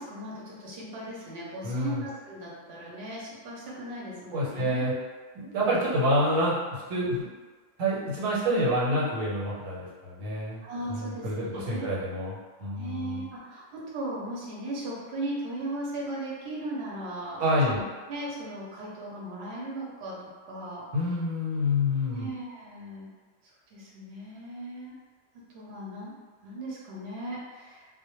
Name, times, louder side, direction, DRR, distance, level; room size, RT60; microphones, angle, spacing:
voice 1, 0.0-4.8 10.6-11.9 12.7-17.8 18.1-20.9 22.1-23.1 23.7-24.9 25.5-26.1 26.4-27.9, right 1 dB, 60° right, -4 dB, 0.8 m, -37 dB
voice 2, 1.6-2.0 4.3-4.9 5.3-7.3 7.8-10.6 10.9-13.2 17.4-17.8 20.9-22.3, equal, 90° right, -6 dB, 1.1 m, -27 dB
2.1 x 2.1 x 2.9 m, 1.4 s
omnidirectional pair, 1.4 m